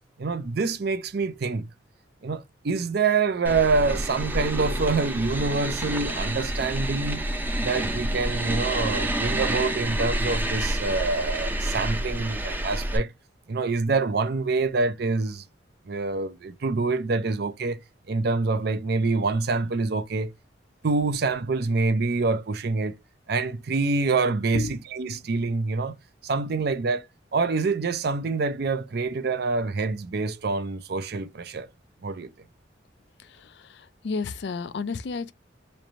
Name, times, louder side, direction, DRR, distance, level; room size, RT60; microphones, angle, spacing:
voice 1, 0.2-1.7 2.2-7.2 7.6-13.1 13.5-15.4 15.9-17.8 18.1-20.3 20.8-22.9 23.3-26.0 26.2-27.1 27.3-31.7 32.0-32.3, right 3 dB, 55° right, 0.5 m, -26 dB
sound 1, 3.4-13.0, right 1 dB, 10° right, 0.5 m, -28 dB
voice 2, 33.2-35.3, left 4 dB, 60° left, 0.4 m, -32 dB
3.2 x 2.5 x 4.1 m
head